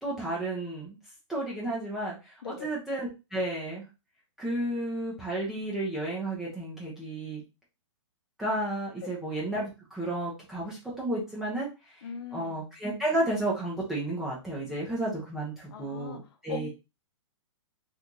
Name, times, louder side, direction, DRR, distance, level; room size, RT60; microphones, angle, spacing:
voice 1, 0.0-1.0 1.3-3.8 4.4-7.4 8.4-11.7 12.3-16.7, right 1 dB, ahead, 0.4 m, -32 dB
voice 2, 2.4-2.7 9.0-9.1 12.0-12.6 15.7-16.7, left 6 dB, 50° left, 0.6 m, -40 dB
2.9 x 2.5 x 3.6 m
hypercardioid pair, 170°, 16 cm